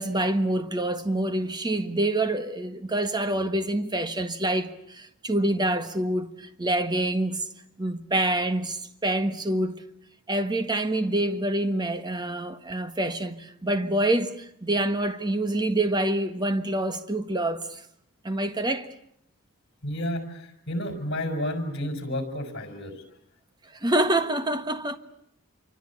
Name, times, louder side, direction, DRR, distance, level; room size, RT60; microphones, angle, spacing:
voice 1, 0.0-7.4 7.8-9.8 10.3-17.8 18.2-18.9 23.8-25.0, right 1 dB, 20° right, 1.4 m, -26 dB
voice 2, 19.8-22.9, left 1 dB, 50° left, 5.2 m, -31 dB
27.0 x 25.0 x 8.4 m
head